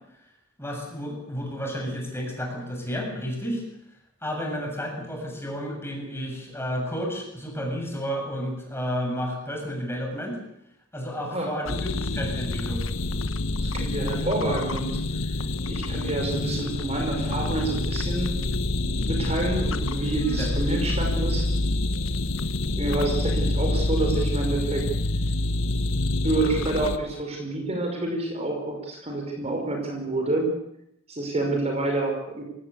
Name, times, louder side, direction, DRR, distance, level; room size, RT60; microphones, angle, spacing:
voice 1, 0.6-3.6 4.2-10.4 10.9-12.8 20.3-20.5, equal, 10° left, 1 dB, 7.3 m, -31 dB
sound 1, 11.7-27.0, left 2 dB, 75° left, 1.3 m, -27 dB
voice 2, 13.6-15.0 15.7-18.5 18.8-21.5 22.8-24.9 26.2-30.5 31.1-32.4, right 2 dB, 30° right, 2 dB, 5.4 m, -28 dB
sound 2, 19.6-21.6, right 3 dB, 60° right, 3.6 m, -42 dB
23.5 x 18.0 x 8.4 m, 0.77 s
head